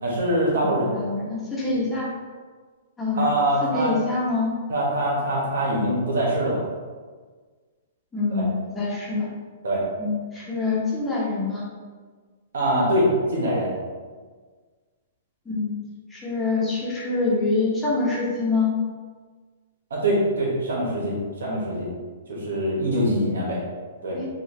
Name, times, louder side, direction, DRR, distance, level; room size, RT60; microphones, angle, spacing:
voice 1, 0.0-0.9 3.1-3.9 4.7-6.6 8.3-8.5 9.6-9.8 12.5-13.7 19.9-21.9 22.3-23.6 24.0-24.2, right 1 dB, 85° right, -4 dB, 1.2 m, -23 dB
voice 2, 0.8-2.1 3.0-3.2 3.6-4.5 8.1-9.3 10.0-11.7 15.4-15.8 16.1-18.7 24.1-24.3, left 3 dB, 10° left, -7 dB, 1.1 m, -25 dB
3.8 x 2.5 x 3.1 m, 1.5 s
hypercardioid pair, 135°, 0 cm